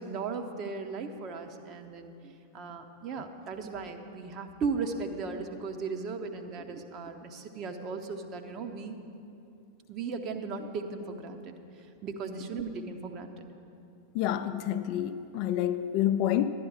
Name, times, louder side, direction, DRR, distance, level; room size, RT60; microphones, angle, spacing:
voice 1, 0.0-9.0 9.9-11.5 12.0-13.5, right 4 dB, 35° right, 0.9 m, -37 dB
voice 2, 14.1-16.5, left 11 dB, 45° left, 0.4 m, -28 dB
11.5 x 10.5 x 4.9 m
figure-of-eight pair, 90°, 0 cm